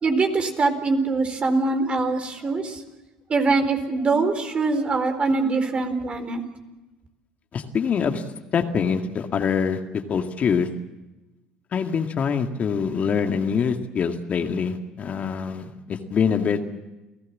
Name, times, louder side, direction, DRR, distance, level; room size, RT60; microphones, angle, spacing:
voice 1, 0.0-2.8 3.3-6.4, right 3 dB, 35° right, 7 dB, 4.2 m, -23 dB
voice 2, 7.5-8.2 8.5-10.7 11.7-16.6, left 6 dB, 45° left, 5 dB, 2.1 m, -24 dB
29.0 x 17.0 x 7.5 m, 1.1 s
hypercardioid pair, 75°, 4 cm